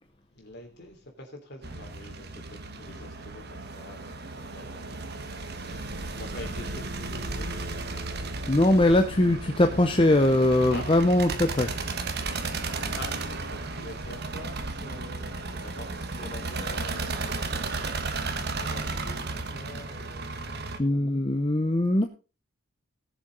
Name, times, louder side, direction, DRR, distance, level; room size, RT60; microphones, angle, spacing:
voice 1, 0.3-7.6 10.7-10.8 12.9-13.2 13.4-17.3 18.4-20.6, left 2 dB, 50° left, 3.2 m, -46 dB
sound 1, 1.6-20.8, right 3 dB, 50° right, 1.3 m, -34 dB
voice 2, 8.5-11.7 20.8-22.0, left 1 dB, 25° left, 0.7 m, -21 dB
18.5 x 7.0 x 3.9 m
head